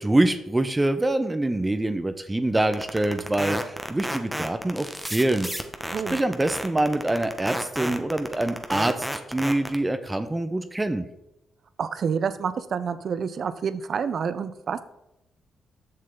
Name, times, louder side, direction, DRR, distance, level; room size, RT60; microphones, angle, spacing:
voice 1, 0.0-5.5 6.1-11.0, right 1 dB, 20° right, 9 dB, 0.7 m, -25 dB
sound 1, 2.7-9.8, equal, ahead, 1.1 m, -31 dB
voice 2, 11.8-14.8, right 6 dB, 60° right, 13 dB, 0.5 m, -28 dB
7.6 x 6.5 x 3.8 m, 0.86 s
supercardioid pair, 50°, 0 cm